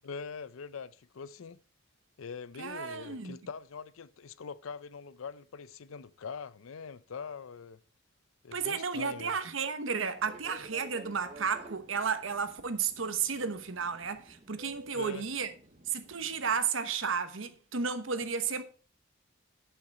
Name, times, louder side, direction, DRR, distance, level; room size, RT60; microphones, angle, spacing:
voice 1, 0.0-1.6 2.2-7.8 8.4-9.3 14.9-15.2, left 5 dB, 80° left, 0.5 m, -43 dB
voice 2, 2.6-3.4 8.5-15.5 15.9-18.6, right 6 dB, 70° right, 1.0 m, -33 dB
Fixed-wing aircraft airplane, 10.2-16.6, right 2 dB, 30° right, 0.9 m, -52 dB
10.5 x 5.8 x 4.1 m
head